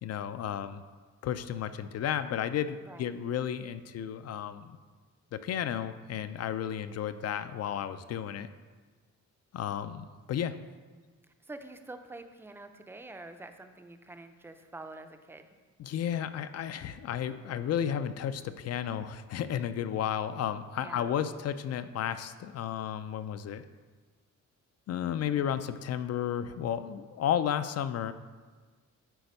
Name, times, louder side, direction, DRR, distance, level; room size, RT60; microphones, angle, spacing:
voice 1, 0.0-0.8 1.2-4.8 5.3-8.5 9.5-10.6 15.8-23.6 24.9-28.1, left 9 dB, 55° left, 12 dB, 0.4 m, -33 dB
voice 2, 11.4-15.5 20.8-21.1, right 2 dB, 10° right, 7 dB, 0.4 m, -46 dB
9.2 x 4.4 x 5.3 m, 1.4 s
cardioid pair, 145°, 30 cm